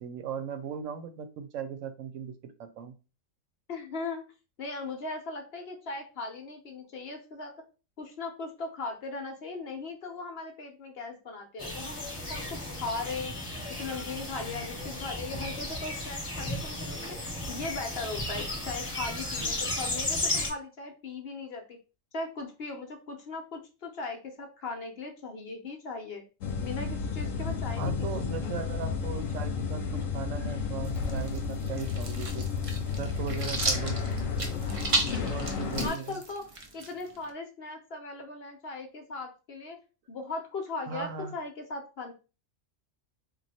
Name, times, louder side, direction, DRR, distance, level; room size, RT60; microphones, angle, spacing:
voice 1, 0.0-3.0 27.8-32.5 33.0-34.0 35.2-36.2 40.9-41.4, right 7 dB, 75° right, 9 dB, 0.9 m, -38 dB
voice 2, 3.7-4.2 4.6-7.5 8.0-13.3 13.7-21.8 22.1-26.2 26.6-28.1 28.4-28.6 34.9-35.5 35.8-36.4 36.7-39.8 40.1-42.1, left 3 dB, 55° left, 4 dB, 0.9 m, -38 dB
sound 1, 11.6-20.5, left 2 dB, 25° left, 1.0 m, -34 dB
sound 2, 26.4-35.9, left 5 dB, 75° left, 1.0 m, -32 dB
sound 3, 30.8-37.3, right 2 dB, 40° right, 0.5 m, -34 dB
3.0 x 2.4 x 4.1 m, 0.32 s
omnidirectional pair, 1.3 m